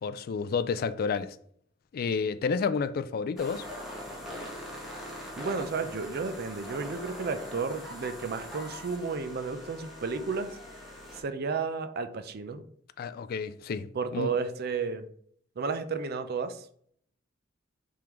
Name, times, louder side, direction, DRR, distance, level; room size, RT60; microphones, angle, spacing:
voice 1, 0.0-1.4 1.9-3.7 13.0-13.9 14.1-14.3, left 5 dB, 50° left, 0.3 m, -30 dB
sound 1, 3.4-11.2, equal, ahead, 1.1 m, -42 dB
voice 2, 5.4-10.5 11.2-12.6 13.9-15.1 15.6-16.7, right 5 dB, 55° right, 0.5 m, -32 dB
4.8 x 3.6 x 3.0 m
head